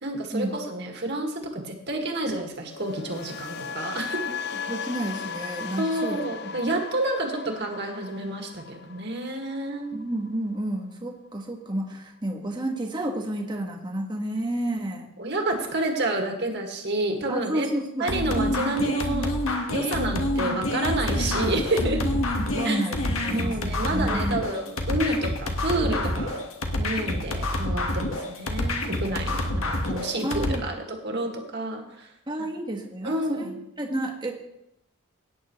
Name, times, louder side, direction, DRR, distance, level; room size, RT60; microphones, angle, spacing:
voice 1, 0.0-4.2 5.8-9.9 15.2-17.7 18.0-19.3 19.7-22.0 22.6-22.8 23.3-26.4 26.8-32.1 32.4-32.5 33.0-33.6, right 2 dB, 50° right, 2 dB, 1.9 m, -29 dB
sound 1, 2.7-10.8 11.0-11.4, left 6 dB, 50° left, 0.5 m, -37 dB
voice 2, 4.7-6.6 9.9-15.1 17.3-18.1 22.4-24.4 30.2-30.6 32.3-34.3, right 1 dB, 20° right, 1 dB, 1.4 m, -31 dB
sound 2, 18.1-30.6, left 1 dB, 70° left, 1.5 m, -27 dB
17.5 x 9.3 x 3.1 m, 0.82 s
head